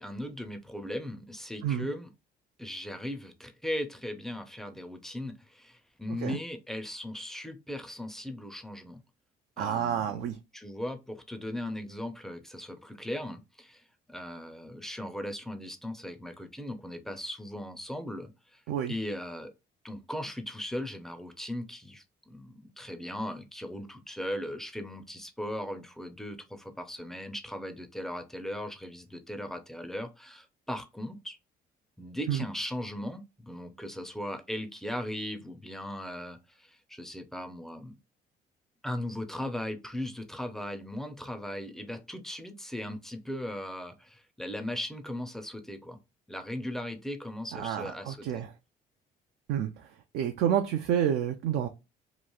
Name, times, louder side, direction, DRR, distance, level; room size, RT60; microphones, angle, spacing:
voice 1, 0.0-2.1 2.6-9.0 9.6-18.6 18.9-19.5 19.8-31.4 32.0-38.0 38.8-46.0 46.3-48.4, left 1 dB, ahead, 0.4 m, -38 dB
voice 2, 9.6-10.4 18.7-18.9 32.3-32.4 47.5-48.5 49.5-49.7 50.1-51.7, right 9 dB, 75° right, 0.4 m, -29 dB
3.0 x 2.4 x 2.2 m
cardioid pair, 110°, 17 cm